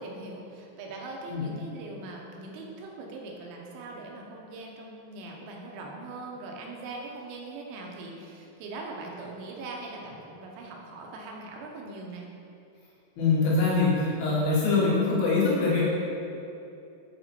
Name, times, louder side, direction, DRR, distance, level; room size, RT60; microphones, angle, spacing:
voice 1, 0.0-12.3, right 2 dB, 80° right, 0 dB, 2.6 m, -41 dB
voice 2, 13.2-15.8, left 3 dB, 90° left, -6 dB, 3.2 m, -24 dB
6.9 x 4.3 x 4.2 m, 2.7 s
omnidirectional pair, 4.2 m